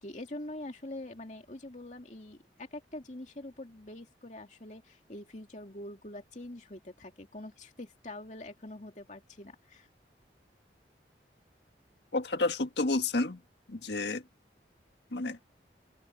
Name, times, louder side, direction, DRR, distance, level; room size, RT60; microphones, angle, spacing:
voice 1, 0.0-9.9, left 1 dB, 45° left, 2.6 m, -44 dB
voice 2, 12.1-13.4 13.7-14.2 15.1-15.4, left 2 dB, 75° left, 1.5 m, -30 dB
open air
head